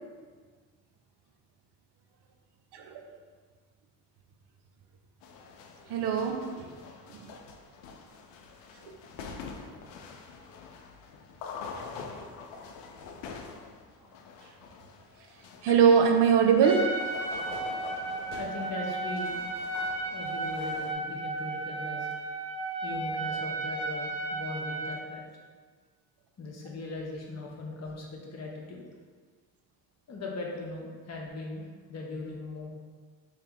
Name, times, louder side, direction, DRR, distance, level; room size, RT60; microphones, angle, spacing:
sound 1, 5.2-20.9, left 5 dB, 80° left, 0.5 m, -45 dB
voice 1, 5.9-6.7 7.1-7.3 8.8-8.9 15.6-17.0, right 7 dB, 65° right, 3 dB, 0.5 m, -23 dB
Trumpet, 16.6-25.0, right 2 dB, 10° right, 0.7 m, -34 dB
voice 2, 18.3-19.4 20.1-22.1 22.8-25.2 26.4-28.8 30.1-32.7, left 3 dB, 35° left, -1 dB, 0.9 m, -39 dB
2.9 x 2.8 x 3.5 m, 1.5 s
supercardioid pair, 60°, 43 cm